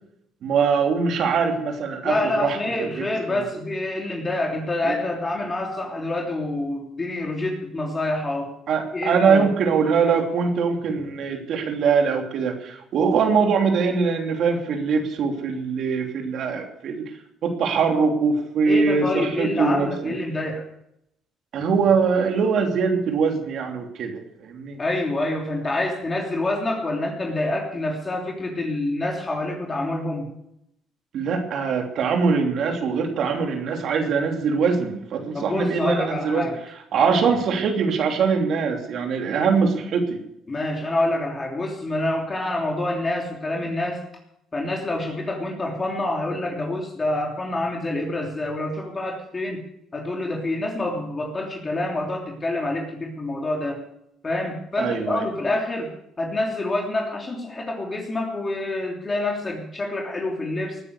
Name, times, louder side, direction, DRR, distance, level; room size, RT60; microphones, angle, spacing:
voice 1, 0.4-2.6 3.0-3.5 4.8-5.0 8.7-17.1 17.4-20.1 21.5-24.8 31.1-36.4 36.9-40.2 54.8-55.2, right 5 dB, 65° right, 3 dB, 3.1 m, -22 dB
voice 2, 2.0-8.5 8.9-9.5 18.6-20.7 24.8-30.3 35.3-36.6 37.0-37.2 40.5-44.0 44.5-49.6 49.9-53.8 54.2-55.9 56.2-60.8, left 2 dB, 30° left, 0 dB, 3.1 m, -27 dB
19.0 x 9.8 x 6.8 m, 0.78 s
supercardioid pair, 75°, 0 cm